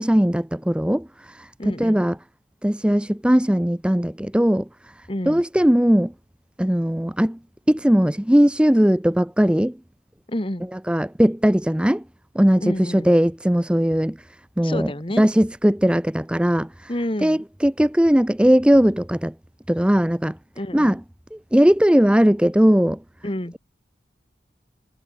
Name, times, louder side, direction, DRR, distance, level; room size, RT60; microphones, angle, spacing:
voice 1, 0.0-2.2 2.6-6.1 6.6-7.4 7.7-9.8 10.7-12.0 12.3-14.2 14.6-14.9 15.2-16.9 17.2-19.3 19.7-20.4 20.7-21.0 21.3-23.0, equal, 5° right, 0.5 m, -19 dB
voice 2, 1.6-2.0 5.1-5.4 10.3-10.7 12.6-13.1 14.6-15.2 16.9-17.4 20.5-21.0 23.2-23.5, left 1 dB, 30° left, 1.7 m, -29 dB
head